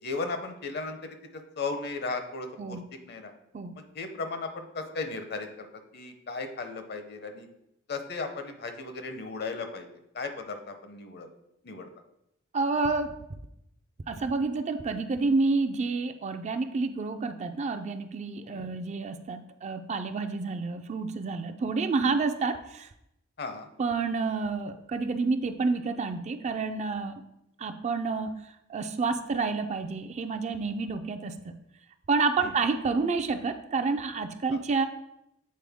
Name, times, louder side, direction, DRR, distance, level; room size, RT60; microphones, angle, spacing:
voice 1, 0.0-1.2 1.6-2.8 3.1-3.3 3.8-5.7 5.9-7.5 7.9-9.9 10.1-11.3 11.6-11.9 18.5-18.7 23.4-23.7 32.4-32.5, left 3 dB, 55° left, 7 dB, 0.7 m, -36 dB
voice 2, 12.5-13.2 14.1-22.9 23.8-27.2 27.6-31.5 32.1-34.9, right 4 dB, 35° right, 8 dB, 0.4 m, -29 dB
7.5 x 4.2 x 3.5 m, 0.82 s
head